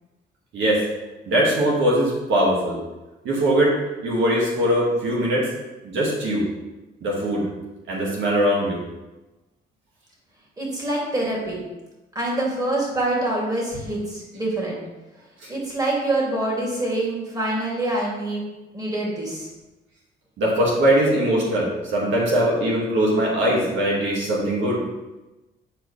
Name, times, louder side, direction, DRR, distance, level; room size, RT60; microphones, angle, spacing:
voice 1, 0.5-0.8 1.3-2.8 3.2-3.7 4.0-5.5 5.8-6.4 7.0-7.4 7.9-8.8 15.4-15.5 20.4-24.8, right 1 dB, 75° right, -4 dB, 2.0 m, -21 dB
voice 2, 10.6-11.6 12.1-14.8 15.5-18.4 18.7-19.5, right 1 dB, 20° right, -4 dB, 2.6 m, -25 dB
9.6 x 4.6 x 3.3 m, 1.1 s
cardioid pair, 90°, 20 cm